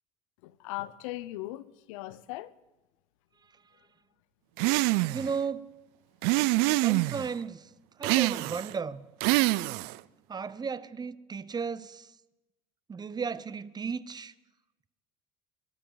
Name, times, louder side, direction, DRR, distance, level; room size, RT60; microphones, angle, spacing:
voice 1, 0.4-2.5, left 17 dB, 85° left, 0.7 m, -39 dB
sound 1, 4.6-5.3 6.2-7.3 8.0-8.7 9.2-10.0, right 21 dB, 75° right, 0.4 m, -25 dB
voice 2, 5.1-5.7 6.7-7.7 8.0-9.1 10.3-12.1 12.9-14.3, right 5 dB, 25° right, 0.8 m, -35 dB
24.0 x 13.0 x 4.0 m
supercardioid pair, 85°, 16 cm